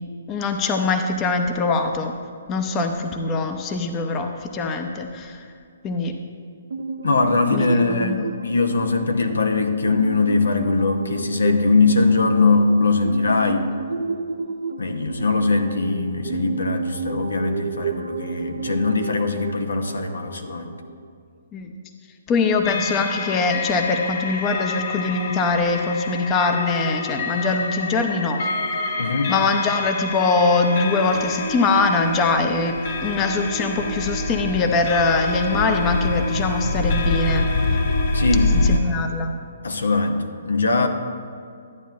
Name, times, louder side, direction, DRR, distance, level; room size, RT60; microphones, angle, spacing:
voice 1, 0.3-2.1 2.5-5.4 5.8-6.1 7.5-8.2 21.5-21.7 22.3-28.5 29.3-37.5 38.5-39.3, left 3 dB, 25° left, 5 dB, 0.7 m, -22 dB
sound 1, 6.7-21.1, right 4 dB, 70° right, 0.5 m, -32 dB
voice 2, 7.0-13.7 14.8-20.7 29.0-29.3 38.1-38.5 39.6-40.9, left 3 dB, 80° left, 6 dB, 0.8 m, -21 dB
sound 2, 22.6-38.8, left 2 dB, 55° left, 1.1 m, -26 dB
13.0 x 9.1 x 2.5 m, 2.3 s
figure-of-eight pair, 130°, 0 cm